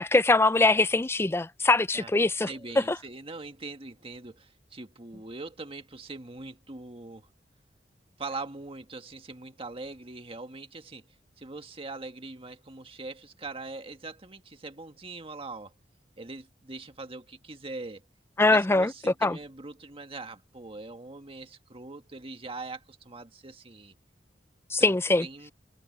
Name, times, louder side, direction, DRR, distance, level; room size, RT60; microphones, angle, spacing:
voice 1, 0.0-2.5 2.9-3.0 18.4-18.9 19.2-19.4 24.7-25.3, left 2 dB, 15° left, 0.5 m, -22 dB
voice 2, 2.5-7.3 8.2-11.0 11.4-15.7 16.2-18.0 18.5-23.9 24.8-25.5, right 3 dB, 35° right, 1.7 m, -42 dB
head